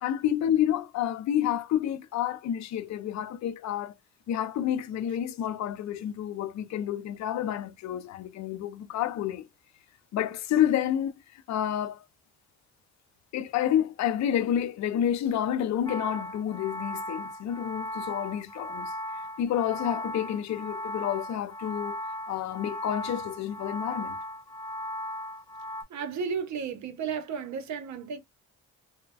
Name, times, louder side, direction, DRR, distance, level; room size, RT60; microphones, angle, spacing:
voice 1, 0.0-3.9 4.3-9.5 10.1-12.0 13.3-18.9 19.4-22.0 22.3-24.2, left 10 dB, 65° left, 0.5 m, -29 dB
sound 1, 15.9-25.8, equal, 15° left, 0.3 m, -37 dB
voice 2, 25.9-28.2, right 6 dB, 65° right, 0.8 m, -33 dB
3.3 x 2.1 x 2.2 m
cardioid pair, 90°, 30 cm